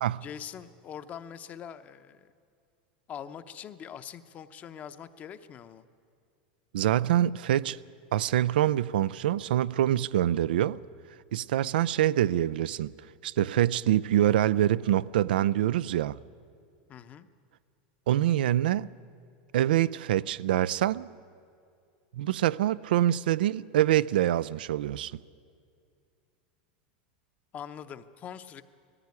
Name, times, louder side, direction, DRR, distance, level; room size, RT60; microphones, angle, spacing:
voice 1, 0.2-2.3 3.1-5.8 16.9-17.3 27.5-28.6, left 8 dB, 30° left, 0.8 m, -43 dB
voice 2, 6.7-7.8 8.1-10.8 11.3-12.9 13.2-16.2 18.1-18.9 19.5-21.1 22.1-25.2, right 12 dB, 90° right, 0.4 m, -25 dB
18.5 x 15.0 x 9.6 m
supercardioid pair, 135°, 5 cm